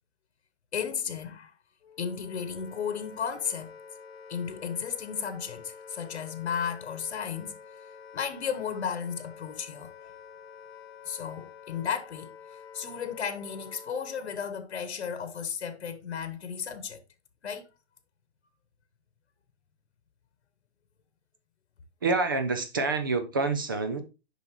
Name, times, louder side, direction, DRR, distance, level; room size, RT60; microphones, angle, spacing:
voice 1, 0.7-1.5 2.0-3.7 4.3-7.6 8.1-10.1 11.0-17.0 17.4-17.7, left 7 dB, 90° left, 1.2 m, -34 dB
Wind instrument woodwind instrument, 1.8-14.5, left 6 dB, 65° left, 1.0 m, -48 dB
voice 2, 22.0-24.0, right 3 dB, 20° right, 0.4 m, -27 dB
7.3 x 5.4 x 2.9 m
hypercardioid pair, 170°, 33 cm